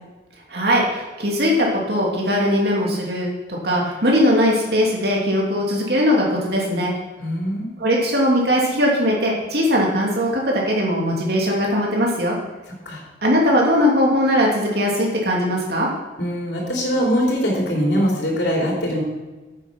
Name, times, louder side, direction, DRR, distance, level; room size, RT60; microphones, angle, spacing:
voice 1, 0.5-6.9 7.8-12.4 13.2-15.9, equal, 60° right, -3 dB, 2.8 m, -20 dB
voice 2, 7.2-7.7 12.8-13.0 16.2-19.0, equal, 75° left, -2 dB, 3.3 m, -22 dB
9.6 x 8.3 x 6.0 m, 1.2 s
head